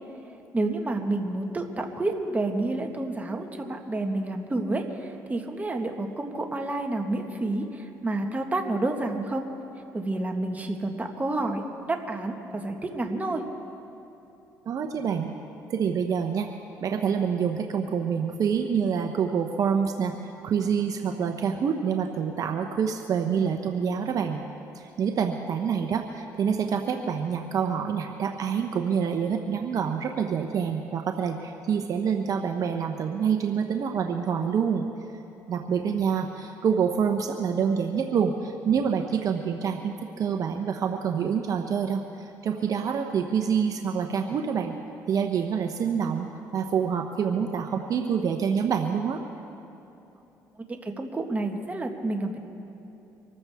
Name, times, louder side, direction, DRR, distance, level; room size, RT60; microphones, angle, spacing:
voice 1, 0.5-9.4 9.9-11.6 11.9-13.4 50.7-52.4, right 2 dB, 20° right, 3 dB, 1.6 m, -29 dB
voice 2, 14.7-15.4 15.7-16.5 16.8-20.2 20.4-24.4 24.7-34.9 35.5-44.7 45.1-49.2, right 7 dB, 55° right, 4 dB, 0.9 m, -27 dB
25.0 x 14.0 x 3.6 m, 3.0 s
cardioid pair, 85°, 7 cm